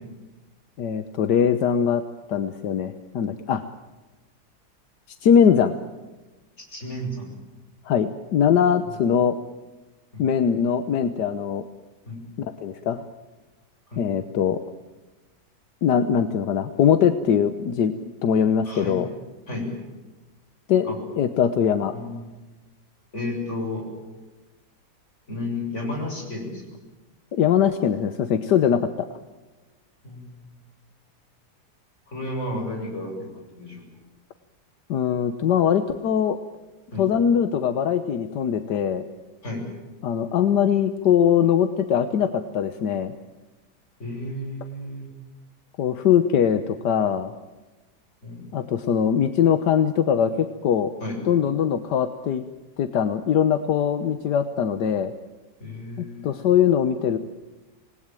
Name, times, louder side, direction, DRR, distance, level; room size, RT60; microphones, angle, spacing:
voice 1, 0.8-2.0 2.3-3.6 5.1-5.7 7.9-9.4 10.2-11.7 12.4-13.0 14.0-14.6 15.8-19.1 20.7-20.9 21.1-22.0 27.3-29.1 34.9-36.4 37.0-39.0 40.0-43.1 45.8-47.3 48.5-50.9 51.3-52.4 52.8-55.1 56.0-57.2, left 8 dB, 80° left, 10 dB, 1.6 m, -21 dB
voice 2, 6.6-7.3 10.1-10.2 12.1-12.2 13.9-14.0 18.6-19.0 19.5-19.7 20.8-21.0 21.9-22.4 23.1-23.8 25.3-26.6 30.0-30.5 32.1-33.8 36.9-37.0 39.4-39.6 44.0-45.1 48.2-48.5 51.0-51.2 55.6-56.4, left 1 dB, 45° left, 1 dB, 7.6 m, -32 dB
27.0 x 20.0 x 9.1 m, 1.2 s
omnidirectional pair, 1.8 m